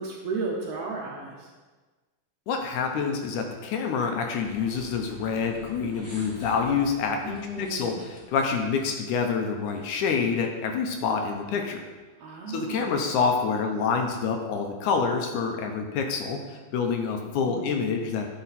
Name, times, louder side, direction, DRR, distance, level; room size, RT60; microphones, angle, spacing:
voice 1, 0.0-1.5 7.2-8.0 12.2-13.0 17.1-17.7, right 3 dB, 65° right, -1 dB, 1.8 m, -34 dB
voice 2, 2.5-11.8 12.5-18.3, left 5 dB, 75° left, 3 dB, 2.1 m, -27 dB
sound 1, 4.4-9.9, right 1 dB, 5° left, 1.8 m, -48 dB
10.0 x 5.7 x 4.1 m, 1.3 s
omnidirectional pair, 3.8 m